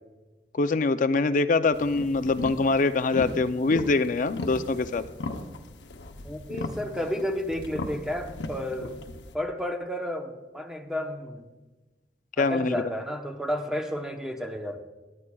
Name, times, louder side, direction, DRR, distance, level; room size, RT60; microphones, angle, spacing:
voice 1, 0.5-5.0 12.4-12.8, left 3 dB, 50° left, 11 dB, 0.5 m, -24 dB
sound 1, 1.7-9.3, left 2 dB, 85° left, 0.7 m, -37 dB
voice 2, 6.2-9.0 9.3-11.4 12.4-14.8, equal, 5° right, 4 dB, 0.9 m, -32 dB
18.0 x 9.8 x 2.3 m, 1.2 s
head